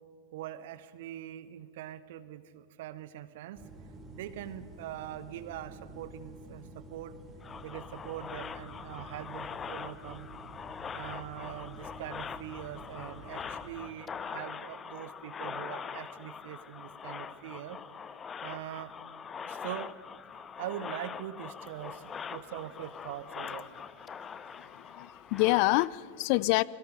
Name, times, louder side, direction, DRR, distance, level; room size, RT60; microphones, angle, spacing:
voice 1, 0.3-3.6 4.1-7.2 7.6-10.3 10.9-17.8 18.4-18.9 19.5-19.9 20.4-22.0 22.3-23.7, right 12 dB, 55° right, 15 dB, 1.2 m, -42 dB
sound 1, 3.5-13.7, right 1 dB, 20° right, 3.6 m, -49 dB
sound 2, 7.4-25.9, left 6 dB, 20° left, 0.8 m, -43 dB
voice 2, 24.2-26.6, left 21 dB, 45° left, 22 dB, 0.5 m, -28 dB
29.0 x 22.5 x 5.3 m, 2.1 s
figure-of-eight pair, 90°, 0 cm